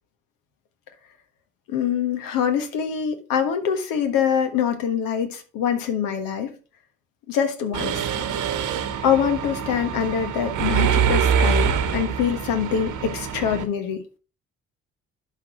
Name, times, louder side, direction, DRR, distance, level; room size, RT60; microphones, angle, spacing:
voice 1, 1.7-6.5 7.3-8.0 9.0-14.0, left 8 dB, 70° left, 1.5 m, -24 dB
Mechanisms, 7.7-13.6, right 7 dB, 60° right, 1.3 m, -24 dB
11.5 x 4.6 x 3.8 m
hypercardioid pair, 50°, 35 cm